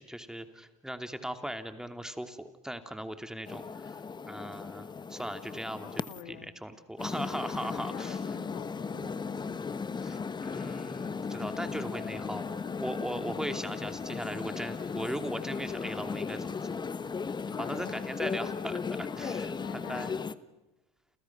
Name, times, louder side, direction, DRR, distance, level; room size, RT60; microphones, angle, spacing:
voice 1, 0.0-8.2 10.0-16.8 17.5-19.5 19.9-20.1, equal, 5° right, 8 dB, 2.7 m, -39 dB
sound 1, 3.5-6.2 7.0-20.3, left 5 dB, 25° left, 1.1 m, -36 dB
voice 2, 5.8-6.6 7.6-9.8 17.5-18.1 19.1-20.2, left 13 dB, 75° left, 10 dB, 2.0 m, -48 dB
29.5 x 29.0 x 6.1 m, 1.0 s
hypercardioid pair, 75°, 18 cm